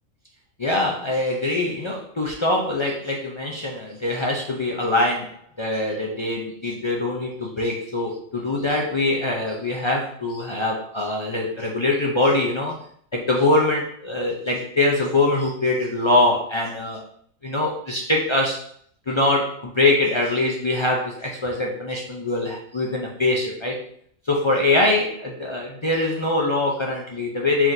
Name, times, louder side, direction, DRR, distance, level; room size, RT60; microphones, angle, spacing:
voice 1, 0.6-12.8 13.1-17.0 17.4-18.6 19.1-23.8 24.3-27.7, left 2 dB, 50° left, -2 dB, 0.3 m, -23 dB
4.8 x 3.7 x 2.6 m, 0.62 s
omnidirectional pair, 1.4 m